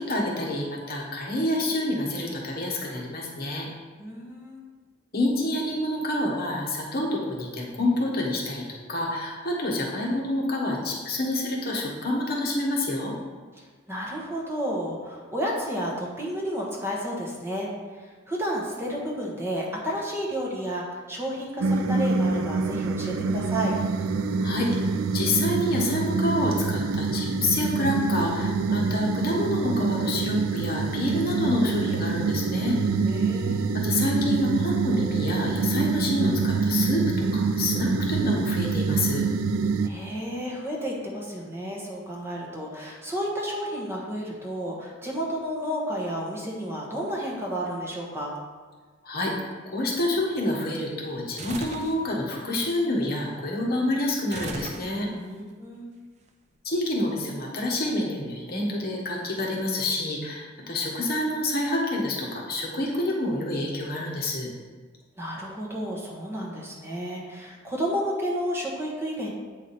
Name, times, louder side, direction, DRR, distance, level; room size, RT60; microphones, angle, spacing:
voice 1, 0.0-3.7 5.1-13.2 24.4-32.8 33.7-39.3 49.0-55.1 56.6-64.5, left 1 dB, 50° left, -2 dB, 1.2 m, -28 dB
voice 2, 4.0-4.6 13.9-17.7 18.0-23.8 33.1-33.7 39.8-48.3 55.2-55.9 65.2-69.3, equal, 10° right, -3 dB, 1.3 m, -31 dB
sound 1, 21.6-39.9, right 4 dB, 90° right, 0.4 m, -26 dB
sound 2, 51.4-52.0 54.3-55.3, right 2 dB, 35° right, 0.6 m, -36 dB
8.3 x 4.9 x 4.2 m, 1.4 s
head